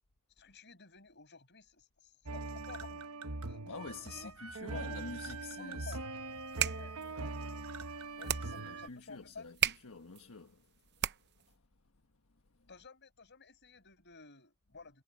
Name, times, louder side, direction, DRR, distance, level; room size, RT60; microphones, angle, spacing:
voice 1, 0.4-3.1 3.5-4.3 4.7-5.0 5.6-6.0 6.6-7.3 8.2-9.5 12.7-15.0, left 4 dB, 55° left, 5.8 m, -52 dB
sound 1, 2.3-8.9, right 3 dB, 80° right, 1.2 m, -42 dB
voice 2, 3.6-6.0 8.4-10.7 11.5-11.6, left 4 dB, 75° left, 1.4 m, -47 dB
sound 2, 6.3-11.5, right 10 dB, 50° right, 0.8 m, -38 dB
head